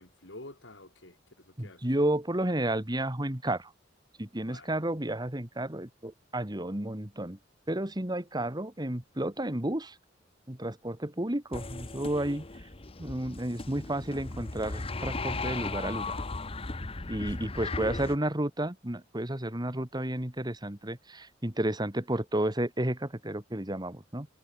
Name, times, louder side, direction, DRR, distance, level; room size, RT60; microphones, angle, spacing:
voice 1, 0.0-2.1 4.4-4.8 16.9-17.7, left 2 dB, 70° left, 5.5 m, -50 dB
voice 2, 1.6-3.7 4.2-7.4 7.7-10.0 10.5-12.4 13.0-16.2 17.1-24.3, right 1 dB, 20° right, 2.1 m, -32 dB
sound 1, 11.5-18.2, left 3 dB, 30° left, 1.1 m, -36 dB
head